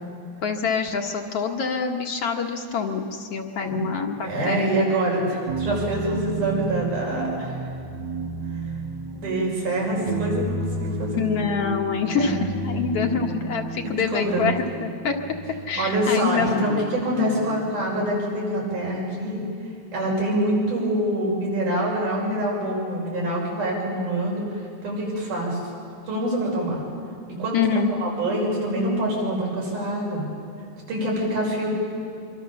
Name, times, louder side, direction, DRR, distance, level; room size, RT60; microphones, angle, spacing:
voice 1, 0.4-4.9 11.1-15.2 15.7-17.5 27.5-27.9, left 6 dB, 60° left, 3 dB, 2.1 m, -26 dB
voice 2, 4.2-7.6 9.1-11.5 12.2-12.4 13.8-14.5 15.8-19.4 19.9-25.6 26.0-26.9 27.3-27.7 28.0-30.3 30.9-31.7, right 1 dB, 85° right, -4 dB, 7.9 m, -25 dB
sound 1, 5.5-18.0, right 2 dB, 50° right, 1.5 m, -32 dB
25.0 x 24.5 x 7.0 m, 2.6 s
omnidirectional pair, 3.5 m